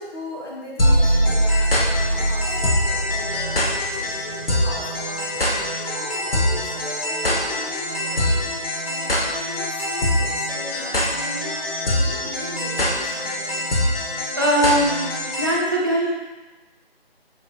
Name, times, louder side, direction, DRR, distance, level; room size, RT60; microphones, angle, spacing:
voice 1, 0.0-10.3 10.7-11.6 11.9-13.9, left 1 dB, 25° left, -5 dB, 1.1 m, -39 dB
sound 1, 0.8-15.6, equal, 65° left, 1.3 m, -23 dB
voice 2, 14.4-15.0 15.4-16.1, right 1 dB, 20° right, -4 dB, 0.7 m, -20 dB
7.0 x 5.7 x 2.3 m, 1.2 s
figure-of-eight pair, 160°, 31 cm